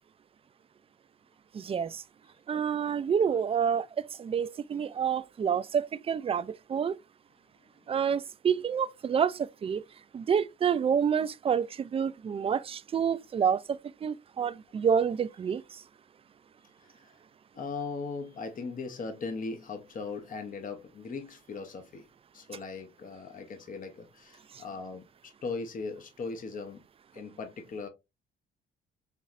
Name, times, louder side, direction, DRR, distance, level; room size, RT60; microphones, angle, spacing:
voice 1, 1.5-2.0 2.5-7.0 7.9-9.8 10.1-15.8 24.5-24.6, right 7 dB, 30° right, 0.3 m, -28 dB
voice 2, 16.8-17.1 17.5-22.1 22.3-26.8 27.1-27.9, left 4 dB, 45° left, 0.8 m, -39 dB
5.4 x 3.0 x 2.5 m
cardioid pair, 90°, 20 cm